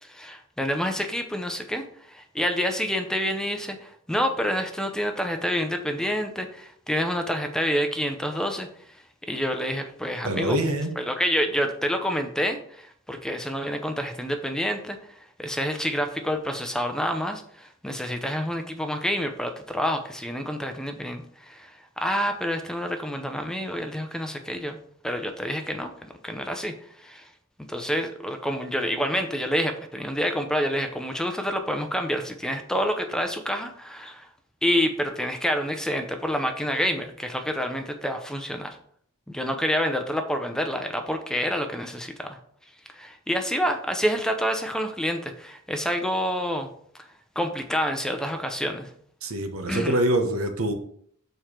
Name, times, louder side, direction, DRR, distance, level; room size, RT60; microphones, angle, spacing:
voice 1, 0.0-9.0 9.3-10.6 11.0-15.1 15.4-24.8 25.0-25.9 26.2-27.3 27.6-34.3 34.6-38.8 39.3-42.4 42.9-46.7 46.9-47.0 47.4-48.9 49.7-50.0, equal, 5° left, 5 dB, 0.6 m, -28 dB
voice 2, 10.2-10.9 49.2-50.7, right 1 dB, 80° right, 5 dB, 1.0 m, -25 dB
6.9 x 4.5 x 4.5 m, 0.64 s
head